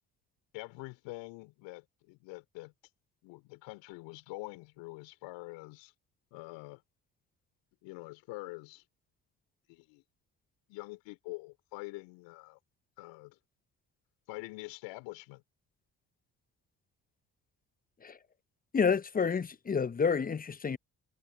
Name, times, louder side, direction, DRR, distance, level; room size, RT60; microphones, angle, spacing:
voice 1, 0.5-2.7 3.2-5.9 6.3-6.8 7.8-8.8 9.7-10.0 10.7-12.6 13.0-13.4 14.3-15.4, left 24 dB, 70° left, 2.8 m, -45 dB
voice 2, 18.7-20.8, left 6 dB, 20° left, 0.7 m, -29 dB
figure-of-eight pair, 45°, 45 cm